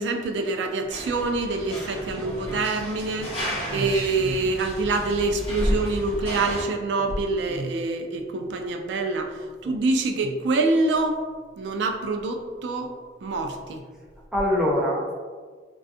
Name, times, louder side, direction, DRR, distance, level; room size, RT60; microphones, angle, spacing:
voice 1, 0.0-11.2 11.6-12.9 13.2-13.8, right 3 dB, 75° right, 5 dB, 0.3 m, -26 dB
sound 1, 0.9-6.6, equal, 30° left, 0.7 m, -32 dB
voice 2, 14.3-15.1, left 1 dB, 5° right, -4 dB, 0.4 m, -25 dB
2.4 x 2.3 x 2.6 m, 1.5 s
head